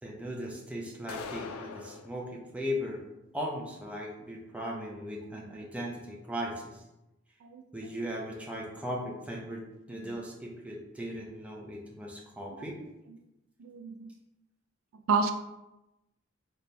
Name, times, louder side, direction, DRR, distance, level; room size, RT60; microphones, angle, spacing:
voice 1, 0.0-3.0 3.3-6.8 7.7-9.6 9.9-12.8, equal, 5° right, -2 dB, 0.5 m, -38 dB
sound 1, 1.1-2.1, left 6 dB, 90° left, 0.3 m, -41 dB
voice 2, 13.6-14.1 15.1-15.3, right 5 dB, 80° right, 7 dB, 0.3 m, -30 dB
3.3 x 2.2 x 4.1 m, 0.94 s
head